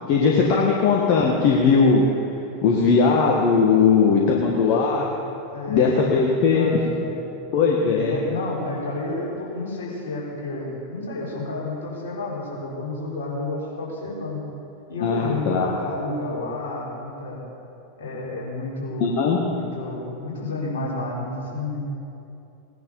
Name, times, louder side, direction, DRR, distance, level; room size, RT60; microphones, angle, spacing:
voice 1, 0.1-2.1 2.6-5.1 5.7-6.8 7.5-8.2 15.0-15.7 19.0-19.4, left 5 dB, 45° left, -2 dB, 1.7 m, -19 dB
voice 2, 5.5-7.2 7.9-14.4 14.9-17.4 18.0-19.1 19.4-21.8, left 2 dB, 65° left, -5 dB, 4.3 m, -30 dB
18.5 x 10.5 x 5.4 m, 2.8 s
figure-of-eight pair, 85°, 0 cm